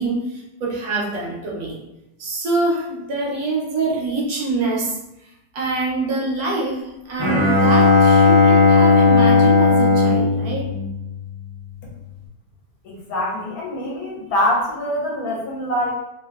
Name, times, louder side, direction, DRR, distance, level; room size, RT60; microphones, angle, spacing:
voice 1, 0.0-1.8 2.2-10.7, right 3 dB, 70° right, -3 dB, 1.1 m, -25 dB
Bowed string instrument, 7.2-11.5, left 4 dB, 35° left, 0.8 m, -15 dB
voice 2, 12.8-15.9, left 1 dB, 70° left, -3 dB, 1.0 m, -24 dB
2.8 x 2.2 x 2.2 m, 0.90 s
omnidirectional pair, 1.7 m